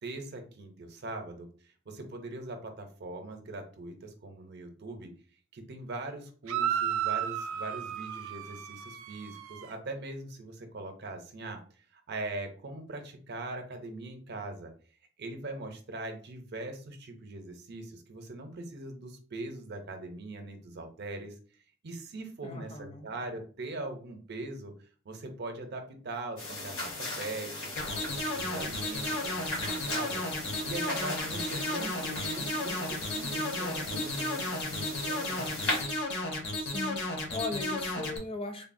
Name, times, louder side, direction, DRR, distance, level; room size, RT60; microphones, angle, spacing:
voice 1, 0.0-5.1 5.5-14.7 15.2-21.3 21.8-35.5, right 2 dB, 55° right, 5 dB, 0.6 m, -41 dB
sound 1, 6.5-9.7, right 10 dB, 90° right, 0.3 m, -33 dB
voice 2, 22.4-23.1 36.6-38.7, left 3 dB, 25° left, 5 dB, 0.5 m, -38 dB
sound 2, 26.4-35.8, left 2 dB, 75° left, 1.5 m, -38 dB
sound 3, 27.8-38.2, left 1 dB, 60° left, 0.7 m, -33 dB
3.6 x 2.0 x 2.5 m, 0.41 s
head